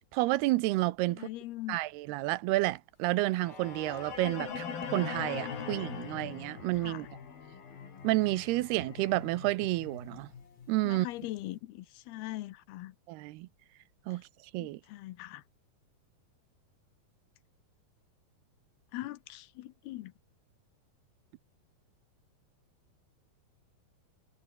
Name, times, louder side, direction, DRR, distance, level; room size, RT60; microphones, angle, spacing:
voice 1, 0.1-1.3 1.7-4.7 4.9-7.1 8.0-10.3 10.7-11.1 13.1-13.5 14.1-14.2 14.5-14.8, right 19 dB, 85° right, 2.7 m, -30 dB
voice 2, 1.1-1.8 6.8-7.1 10.8-13.0 14.6-15.4 18.9-20.1, left 16 dB, 80° left, 2.8 m, -41 dB
sound 1, 3.2-11.3, left 6 dB, 65° left, 5.8 m, -42 dB
omnidirectional pair, 4.7 m